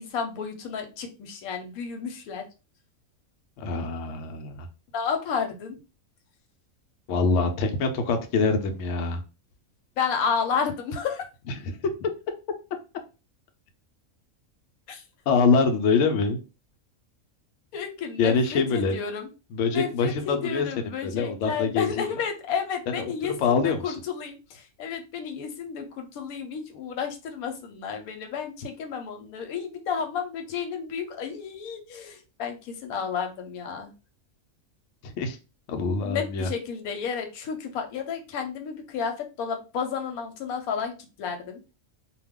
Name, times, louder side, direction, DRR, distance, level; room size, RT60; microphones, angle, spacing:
voice 1, 0.0-2.4 4.9-5.8 10.0-11.2 14.9-15.0 17.7-19.3 19.7-33.9 36.0-41.6, left 6 dB, 85° left, 4 dB, 1.1 m, -31 dB
voice 2, 3.6-4.7 7.1-9.2 11.6-12.1 15.3-16.4 18.2-19.0 19.5-20.7 21.0-22.0 23.0-23.1 23.4-24.0 35.0-35.4 35.7-36.5, left 4 dB, 70° left, 5 dB, 0.8 m, -24 dB
2.3 x 2.2 x 3.4 m, 0.31 s
omnidirectional pair, 1.5 m